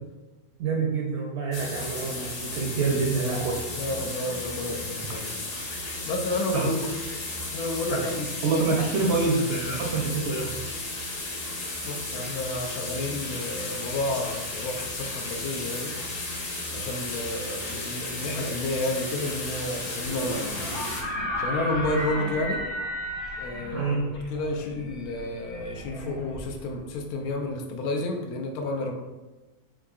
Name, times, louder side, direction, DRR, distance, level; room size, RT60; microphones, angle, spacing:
voice 1, 0.6-3.6 6.5-6.8 7.9-8.1 8.4-10.6 23.7-24.1, right 4 dB, 65° right, -1 dB, 0.7 m, -26 dB
sound 1, 1.5-21.0, left 2 dB, 55° left, 0.4 m, -34 dB
voice 2, 3.8-5.3 5.6-6.8 7.5-8.6 9.0-9.4 11.1-11.2 11.8-15.9 16.3-20.7 21.4-22.6 23.4-24.0 24.3-28.9, left 2 dB, 80° left, 2 dB, 1.0 m, -31 dB
sound 2, 20.0-26.9, equal, 25° left, 0.7 m, -33 dB
3.7 x 3.6 x 2.3 m, 1.1 s
omnidirectional pair, 1.6 m